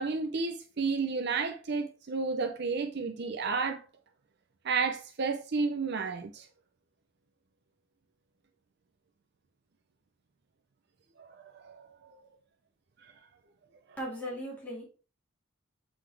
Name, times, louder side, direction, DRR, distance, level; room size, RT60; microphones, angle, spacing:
voice 1, 0.0-3.8 4.6-6.5 11.2-12.2, right 4 dB, 55° right, 0.6 m, -32 dB
voice 2, 14.0-14.8, equal, 10° left, 2.1 m, -37 dB
7.6 x 4.0 x 3.3 m
head